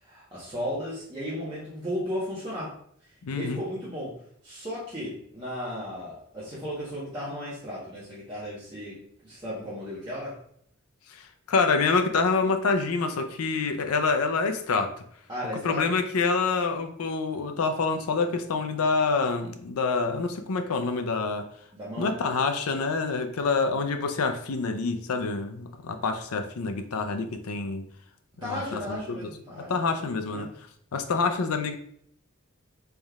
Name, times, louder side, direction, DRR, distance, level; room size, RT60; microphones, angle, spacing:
voice 1, 0.0-2.7 3.3-4.2 4.4-10.4 15.3-15.9 21.7-22.1 28.4-29.7 30.3-30.5, equal, 20° right, -10 dB, 1.0 m, -35 dB
voice 2, 3.2-3.6 11.1-14.9 15.6-21.5 22.0-27.9 28.4-29.2 29.7-30.5 30.9-31.7, left 4 dB, 90° left, 7 dB, 0.5 m, -27 dB
4.1 x 3.4 x 2.4 m, 0.67 s
head